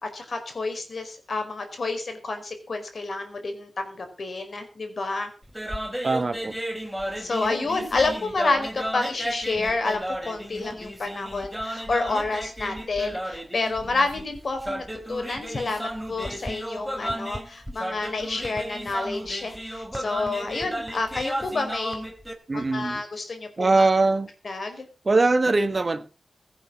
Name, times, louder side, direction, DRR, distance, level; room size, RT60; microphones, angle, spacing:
voice 1, 0.0-5.3 7.0-22.1 22.5-23.9 24.4-24.9, left 3 dB, 60° left, 7 dB, 4.7 m, -29 dB
sound 1, 5.4-22.3, equal, 5° right, 3.8 m, -34 dB
voice 2, 6.0-6.5 22.5-23.0 23.6-24.3 25.0-26.1, right 3 dB, 45° right, 11 dB, 1.4 m, -21 dB
16.0 x 8.2 x 6.2 m, 0.36 s
cardioid pair, 45°, 0 cm